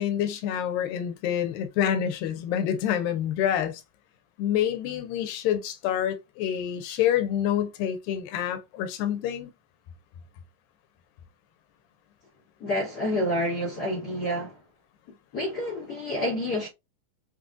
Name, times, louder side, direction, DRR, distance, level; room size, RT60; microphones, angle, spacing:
voice 1, 0.0-3.8 4.4-9.5, left 10 dB, 85° left, 2.3 m, -27 dB
voice 2, 12.6-14.5 15.3-16.7, left 1 dB, 70° left, 0.9 m, -28 dB
5.9 x 2.5 x 2.2 m
omnidirectional pair, 3.9 m